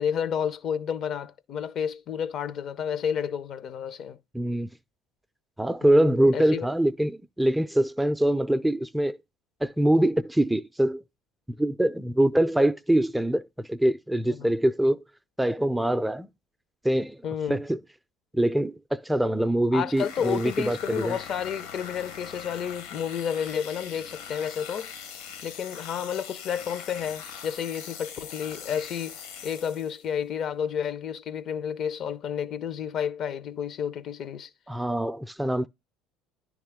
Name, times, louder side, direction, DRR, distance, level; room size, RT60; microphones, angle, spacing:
voice 1, 0.0-4.2 5.8-6.7 14.3-14.5 17.2-17.6 19.7-24.9 25.4-34.5, left 8 dB, 55° left, 0.7 m, -31 dB
voice 2, 4.3-4.7 5.6-9.2 9.6-11.0 11.6-15.0 15.4-16.3 16.8-17.2 17.5-17.8 18.3-21.2 34.7-35.7, right 1 dB, 5° right, 0.4 m, -24 dB
sound 1, 19.9-30.1, left 7 dB, 80° left, 1.6 m, -41 dB
10.0 x 3.6 x 3.6 m
hypercardioid pair, 70°, 0 cm